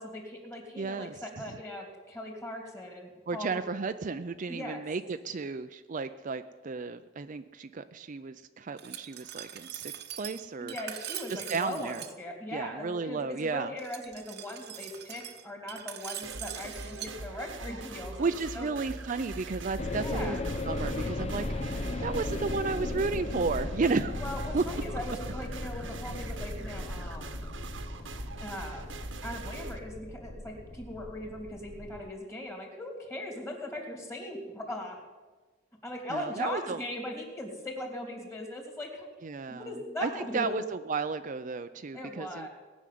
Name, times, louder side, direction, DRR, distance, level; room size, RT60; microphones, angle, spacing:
voice 1, 0.0-3.6 4.5-4.8 10.6-18.7 20.0-20.4 24.1-27.3 28.4-28.9 29.2-35.0 35.8-39.1 39.5-40.5 41.9-42.5, left 1 dB, 15° left, 1 dB, 2.9 m, -39 dB
voice 2, 0.8-1.2 3.3-9.9 10.2-10.7 11.3-12.0 12.5-13.7 18.2-20.4 20.6-24.2 24.5-24.6 36.1-36.8 39.2-42.5, right 4 dB, 40° right, 10 dB, 0.5 m, -33 dB
Glass, 8.8-12.1 13.8-17.1, right 11 dB, 60° right, 0.9 m, -42 dB
sound 1, 16.2-29.8, right 3 dB, 80° right, 1.2 m, -42 dB
sound 2, 19.8-32.1, left 2 dB, 35° left, 0.7 m, -37 dB
19.0 x 6.3 x 9.3 m, 1.3 s
head